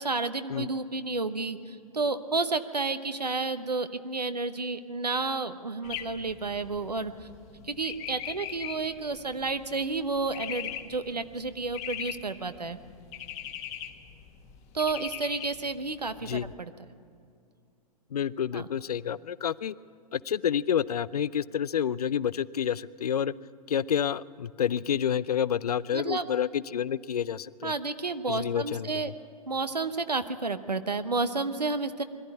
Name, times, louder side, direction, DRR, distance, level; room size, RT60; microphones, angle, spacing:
voice 1, 0.0-7.3 7.6-12.8 14.7-16.7 18.5-18.7 25.9-26.3 27.6-29.1 29.5-32.0, right 3 dB, 90° right, 10 dB, 1.0 m, -31 dB
sound 1, 5.8-16.5, left 10 dB, 35° left, 1.4 m, -41 dB
voice 2, 18.1-19.7 20.1-23.3 23.7-27.7 28.3-29.0, left 9 dB, 70° left, 20 dB, 0.5 m, -29 dB
22.0 x 13.0 x 9.8 m, 2.3 s
figure-of-eight pair, 105°, 20 cm